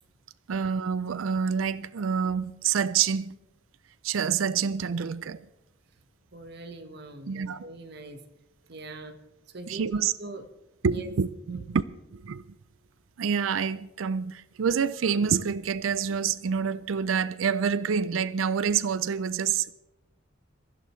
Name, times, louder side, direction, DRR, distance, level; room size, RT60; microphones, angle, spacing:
voice 1, 0.5-3.4 4.0-5.4 7.3-7.7 9.7-10.1 10.8-11.8 12.1-12.4 13.2-19.7, right 6 dB, 90° right, 0.5 m, -27 dB
voice 2, 6.3-8.2 8.7-9.2 9.5-10.5 10.9-11.1 11.5-11.6, right 2 dB, 55° right, 1.3 m, -42 dB
23.5 x 15.0 x 3.2 m
head